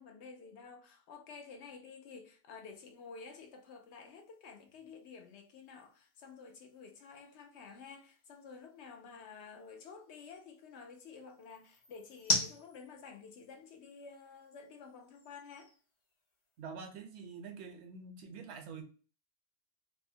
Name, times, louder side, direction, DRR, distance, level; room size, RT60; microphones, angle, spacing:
voice 1, 0.0-15.7, left 5 dB, 85° left, 0.9 m, -51 dB
sound 1, 2.5-16.7, left 2 dB, 40° left, 0.5 m, -44 dB
voice 2, 16.6-18.8, right 5 dB, 80° right, 0.9 m, -46 dB
2.7 x 2.1 x 2.6 m
omnidirectional pair, 1.1 m